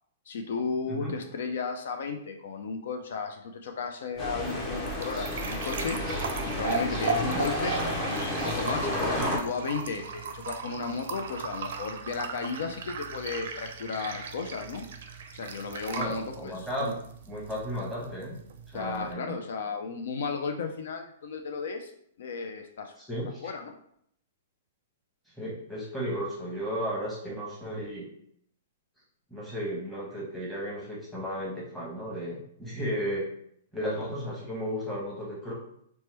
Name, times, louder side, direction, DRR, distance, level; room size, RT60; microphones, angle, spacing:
voice 1, 0.3-7.8 8.1-14.9 15.3-17.0 18.7-21.9 22.2-22.9 23.4-23.7, left 5 dB, 70° left, 5 dB, 0.4 m, -34 dB
sound 1, 4.1-19.1, right 5 dB, 65° right, 0.4 m, -37 dB
sound 2, 4.2-9.4, left 1 dB, 20° left, 0.7 m, -31 dB
voice 2, 15.9-16.9 17.3-18.4 18.7-19.4 23.0-23.5 25.4-28.1 29.3-33.3 33.7-35.5, equal, ahead, -6 dB, 1.0 m, -34 dB
2.9 x 2.1 x 3.3 m, 0.68 s
hypercardioid pair, 150°, 0 cm